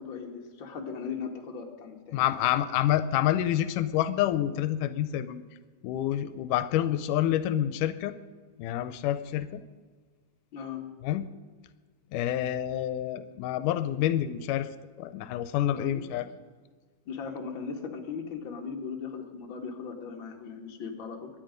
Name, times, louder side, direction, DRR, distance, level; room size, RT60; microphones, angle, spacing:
voice 1, 0.0-2.2 10.5-10.8 15.7-16.1 17.1-21.3, left 5 dB, 45° left, 1 dB, 2.1 m, -38 dB
voice 2, 2.1-5.4 5.8-8.1 8.6-9.6 11.0-11.3 12.1-14.7 15.0-16.3, left 12 dB, 90° left, 12 dB, 2.2 m, -28 dB
24.0 x 10.5 x 5.2 m, 1.5 s
omnidirectional pair, 3.6 m